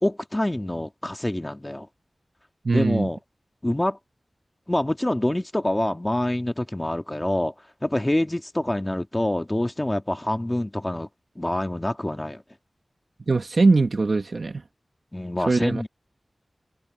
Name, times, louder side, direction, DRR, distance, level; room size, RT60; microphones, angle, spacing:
voice 1, 0.0-1.9 2.7-3.2 3.6-4.0 4.7-7.5 7.8-11.1 11.3-12.4 15.1-15.9, left 1 dB, 20° left, 1.6 m, -26 dB
voice 2, 2.6-3.1 13.3-14.6 15.5-15.8, right 3 dB, 65° right, 1.1 m, -21 dB
wide cardioid pair, 65°, 0 cm